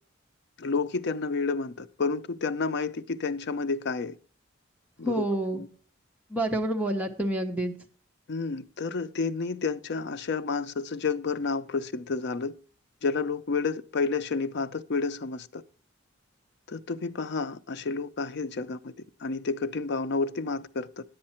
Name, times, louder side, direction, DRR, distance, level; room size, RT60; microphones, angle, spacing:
voice 1, 0.6-4.2 5.0-5.2 5.5-5.7 8.3-12.5 13.0-15.6 16.7-18.9 19.2-20.9, left 4 dB, 60° left, 0.5 m, -30 dB
voice 2, 5.0-5.6 6.3-7.7, right 1 dB, 10° right, 0.9 m, -28 dB
9.8 x 8.6 x 4.3 m
head